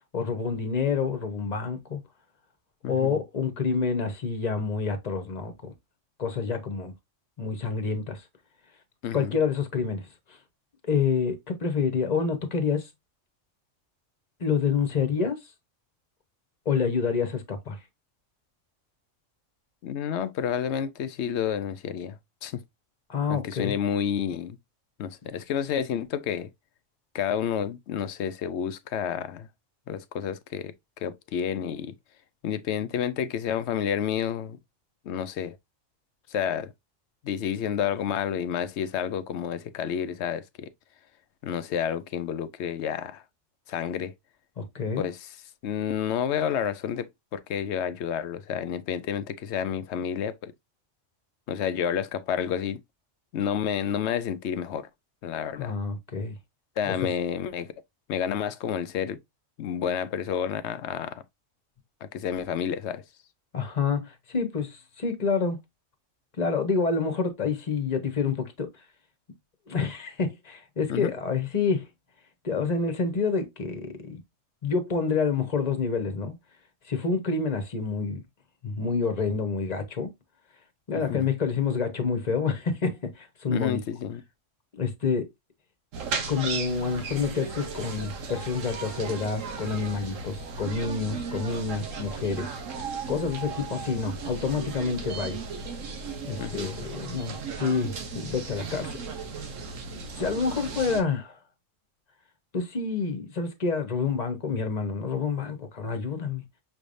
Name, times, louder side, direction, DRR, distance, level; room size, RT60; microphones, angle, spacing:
voice 1, 0.1-2.0 2.9-5.7 6.2-6.9 7.4-8.2 9.1-10.1 10.9-12.9 14.4-15.4 16.6-17.8 23.1-23.7 44.6-45.1 55.6-56.3 57.0-57.1 63.5-65.6 66.4-68.7 69.7-71.9 72.4-74.2 74.6-76.4 76.9-78.2 78.6-80.1 80.9-83.8 84.7-85.3 86.3-92.5 93.1-95.4 96.2-99.0 99.9-101.4 102.5-106.4, left 5 dB, 35° left, 1.1 m, -28 dB
voice 2, 2.8-3.2 9.0-9.3 19.8-22.6 23.3-24.6 25.0-26.5 27.1-29.5 29.9-31.9 32.4-34.6 35.0-35.6 36.3-36.7 37.2-40.7 41.4-43.2 43.7-44.1 45.0-45.4 45.6-50.5 51.5-52.8 53.3-54.9 55.2-55.8 56.8-57.7 58.1-59.2 59.6-61.2 62.0-63.0 70.9-71.1 80.9-81.3 83.5-84.2 96.4-96.9, left 8 dB, 70° left, 0.8 m, -30 dB
sound 1, 85.9-101.0, right 4 dB, 90° right, 1.2 m, -36 dB
6.2 x 3.3 x 2.5 m
omnidirectional pair, 1.3 m